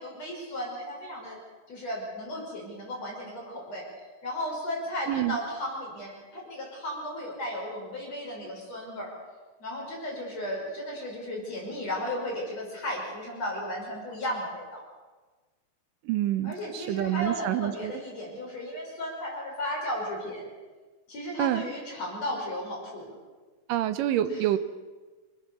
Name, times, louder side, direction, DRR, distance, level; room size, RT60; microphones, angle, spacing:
voice 1, 0.0-1.4 1.7-3.8 4.2-9.1 9.6-14.8 16.4-20.5 21.1-23.1 24.3-24.5, left 1 dB, 50° left, -1 dB, 6.8 m, -35 dB
voice 2, 5.1-5.4 16.1-18.0 21.4-21.7 23.7-24.6, right 13 dB, 90° right, 11 dB, 2.5 m, -27 dB
27.0 x 19.5 x 7.0 m, 1.3 s
omnidirectional pair, 3.7 m